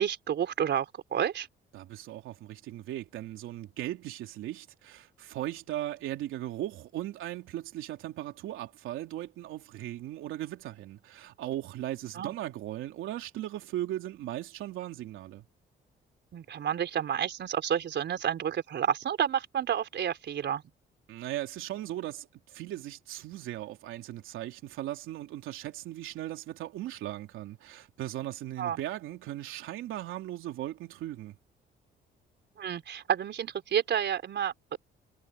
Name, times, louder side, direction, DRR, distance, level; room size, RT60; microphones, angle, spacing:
voice 1, 0.0-1.5 12.1-12.3 16.3-20.6 28.6-28.8 32.6-34.8, right 9 dB, 60° right, 4.4 m, -30 dB
voice 2, 1.7-15.4 21.1-31.3, right 14 dB, 90° right, 3.3 m, -38 dB
cardioid pair, 90°, 20 cm